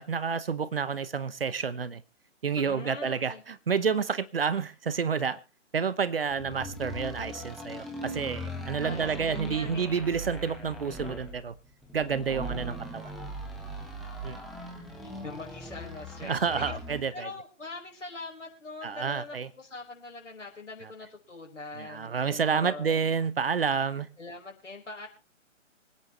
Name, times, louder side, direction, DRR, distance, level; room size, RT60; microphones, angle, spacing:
voice 1, 0.0-2.0 2.4-5.4 5.7-11.5 11.9-13.1 14.2-14.4 16.2-17.3 18.8-19.5 21.8-24.1, right 6 dB, 50° right, 17 dB, 0.9 m, -29 dB
voice 2, 2.6-3.4 8.8-10.1 15.0-16.8 17.1-23.1 24.2-25.1, left 3 dB, 70° left, 0 dB, 5.2 m, -42 dB
sound 1, 6.3-17.1, right 1 dB, ahead, 1.4 m, -40 dB
25.0 x 9.9 x 3.2 m, 0.29 s
figure-of-eight pair, 135°, 38 cm